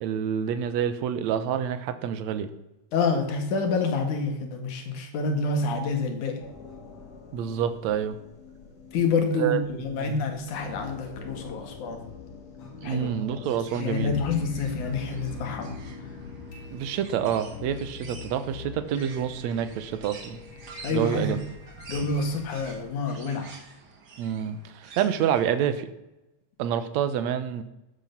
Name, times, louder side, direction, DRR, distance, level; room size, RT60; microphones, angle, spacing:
voice 1, 0.0-2.5 7.3-8.2 9.3-10.2 12.8-14.2 16.7-20.4 20.9-21.4 24.2-25.9 26.6-27.6, right 9 dB, 75° right, 11 dB, 2.2 m, -28 dB
voice 2, 2.9-6.4 8.9-12.1 12.8-13.1 13.8-15.8 20.8-21.4 21.9-23.5, left 4 dB, 85° left, 5 dB, 3.3 m, -28 dB
sound 1, 6.4-22.9, left 4 dB, 65° left, 3.2 m, -42 dB
sound 2, 13.4-25.6, right 4 dB, 40° right, 1.9 m, -47 dB
13.5 x 9.1 x 5.8 m, 0.93 s
omnidirectional pair, 3.4 m